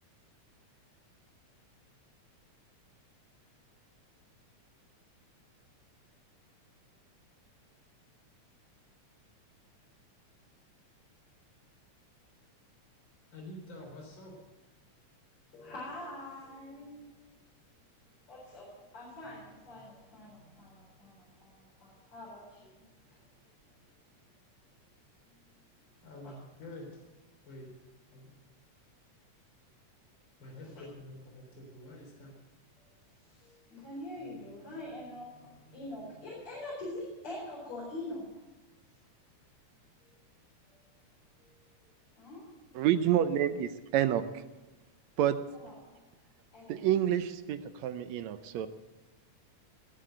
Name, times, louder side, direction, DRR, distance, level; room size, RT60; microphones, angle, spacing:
voice 1, 13.3-14.3 26.0-27.0 27.5-27.7 28.1-28.3 30.4-32.3, left 1 dB, 40° left, 1 dB, 4.3 m, -47 dB
voice 2, 15.5-17.0 18.3-22.8 33.3-38.3 40.7-40.8 41.4-41.5 42.2-42.4 45.5-45.9 46.5-46.8, left 1 dB, 65° left, -6 dB, 5.9 m, -44 dB
voice 3, 42.8-44.2 45.2-45.4 46.7-48.7, right 10 dB, 75° right, 11 dB, 1.8 m, -28 dB
21.0 x 7.7 x 7.8 m, 1.1 s
omnidirectional pair, 3.5 m